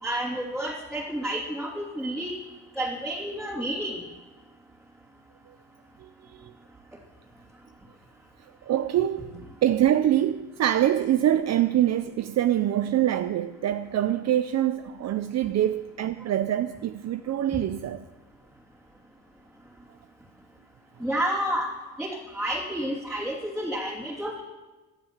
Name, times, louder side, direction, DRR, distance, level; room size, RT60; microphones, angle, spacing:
voice 1, 0.0-2.3 2.8-4.0 21.0-21.7 22.0-24.4, right 1 dB, ahead, 2.9 m, -30 dB
voice 2, 8.6-18.1, right 11 dB, 60° right, 0.6 m, -25 dB
13.5 x 13.0 x 7.3 m
cardioid pair, 90°, 30 cm